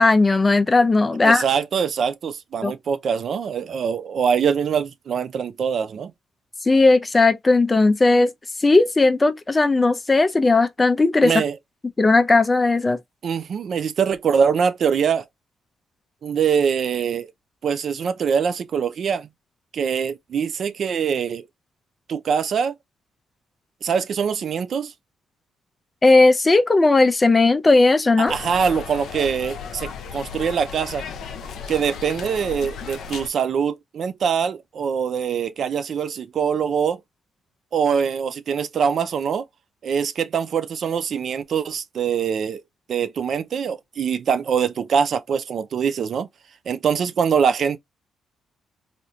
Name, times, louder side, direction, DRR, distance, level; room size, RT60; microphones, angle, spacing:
voice 1, 0.0-1.4 2.6-2.7 6.7-8.3 8.6-11.4 12.0-13.0 26.0-28.3, left 3 dB, 25° left, 0.5 m, -16 dB
voice 2, 1.2-6.1 11.2-11.5 13.2-15.3 16.2-17.3 17.6-19.3 19.7-21.5 22.1-22.7 23.8-24.9 28.2-31.0 31.7-37.0 37.7-39.5 39.8-42.6 42.9-46.3 46.7-47.8, right 7 dB, 55° right, 0.4 m, -23 dB
sound 1, 28.3-33.3, left 6 dB, 70° left, 0.6 m, -35 dB
3.4 x 2.6 x 2.7 m
cardioid pair, 90°, 0 cm